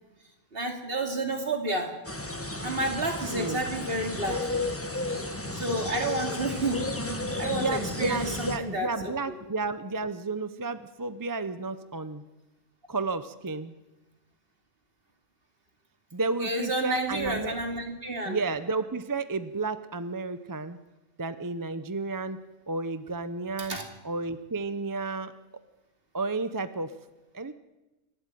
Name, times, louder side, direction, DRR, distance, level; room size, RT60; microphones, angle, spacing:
voice 1, 0.5-2.0 2.6-4.5 5.5-6.9 7.4-9.1 16.4-18.4 23.6-23.9, right 2 dB, 45° right, 4 dB, 2.7 m, -30 dB
sound 1, 2.0-8.6, left 2 dB, 10° left, 1.3 m, -33 dB
voice 2, 3.3-3.7 7.5-12.2 12.9-13.7 16.1-17.6 18.2-20.8 21.2-22.4 22.7-23.8 24.0-25.3 26.1-27.0 27.3-27.5, right 3 dB, 25° right, 12 dB, 0.5 m, -32 dB
27.0 x 12.0 x 9.1 m, 1.1 s
omnidirectional pair, 1.3 m